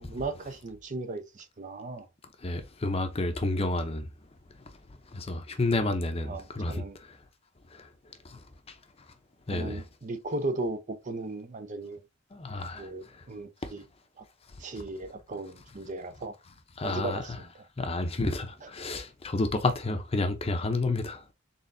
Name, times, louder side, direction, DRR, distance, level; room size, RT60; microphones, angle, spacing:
voice 1, 0.0-2.1 6.3-7.0 9.5-12.0 12.8-13.8 14.2-14.3 14.6-16.3 16.8-17.5 18.6-18.7, right 2 dB, 40° right, 0.5 m, -36 dB
voice 2, 2.4-4.1 4.7-4.8 5.1-7.2 7.7-8.8 9.5-9.8 12.3-13.2 13.6-13.7 16.8-17.2 17.8-21.2, left 2 dB, 30° left, 0.6 m, -31 dB
4.2 x 3.6 x 2.6 m
head